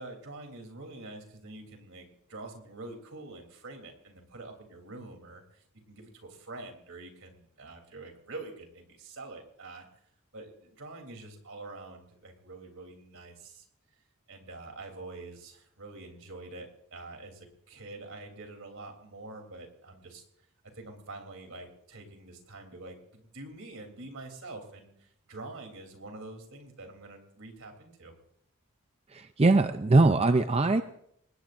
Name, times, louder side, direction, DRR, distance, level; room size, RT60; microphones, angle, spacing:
voice 1, 0.0-9.9 10.3-13.7 14.3-20.2 20.7-28.1, right 2 dB, 70° right, 4 dB, 3.5 m, -46 dB
voice 2, 29.1-30.8, right 2 dB, 30° right, 9 dB, 0.5 m, -22 dB
26.0 x 20.0 x 2.6 m, 0.71 s
head